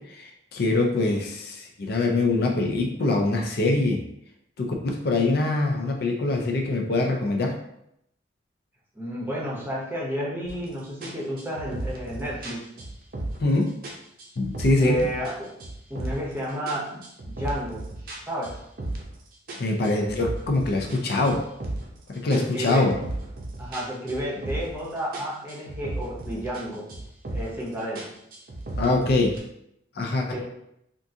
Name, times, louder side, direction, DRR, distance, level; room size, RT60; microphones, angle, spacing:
voice 1, 0.1-4.1 4.6-7.6 13.4-13.8 14.4-15.0 19.6-21.5 22.1-23.0 28.8-29.4 30.0-30.4, left 2 dB, 55° left, 2 dB, 0.4 m, -24 dB
voice 2, 8.9-12.6 14.8-15.5 15.9-17.0 17.3-17.8 18.3-18.6 22.3-22.9 23.6-26.9 27.3-28.0 30.3-30.4, equal, 10° right, -5 dB, 0.7 m, -31 dB
sound 1, 10.5-10.7 11.0-13.5 13.8-15.3 15.6-16.3 16.7-19.2 19.5-22.0 22.3-24.9 25.1-26.6 26.9-27.6 28.0-29.4, right 1 dB, 50° right, 0.6 m, -35 dB
3.6 x 2.4 x 2.7 m, 0.77 s
head